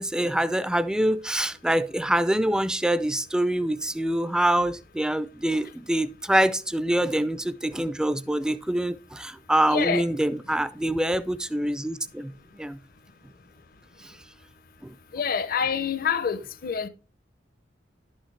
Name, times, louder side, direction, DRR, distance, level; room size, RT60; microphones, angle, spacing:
voice 1, 0.0-12.8 14.0-14.1 14.8-14.9, right 1 dB, 5° right, 0.3 m, -25 dB
voice 2, 9.7-10.1 15.1-16.9, left 6 dB, 50° left, 0.6 m, -26 dB
10.5 x 6.3 x 3.2 m
head